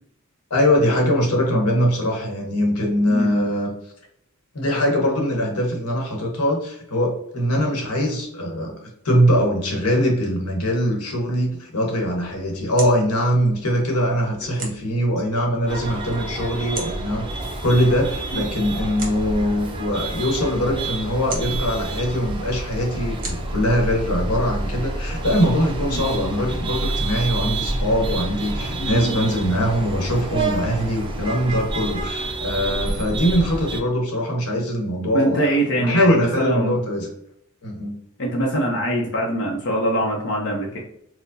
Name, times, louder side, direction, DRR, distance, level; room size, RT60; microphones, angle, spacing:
voice 1, 0.5-3.7 4.5-8.7 9.0-17.2 17.6-35.4 35.8-37.1 37.6-37.9, equal, 85° left, 1 dB, 1.0 m, -22 dB
voice 2, 3.1-3.5 18.3-18.4 25.9-26.0 28.8-29.3 35.1-36.8 38.2-40.8, right 1 dB, 55° left, -2 dB, 0.7 m, -23 dB
sound 1, 12.1-24.9, right 3 dB, 40° right, 1.0 m, -41 dB
sound 2, 15.7-33.8, right 2 dB, 25° right, 0.5 m, -28 dB
4.4 x 2.1 x 2.6 m, 0.73 s
head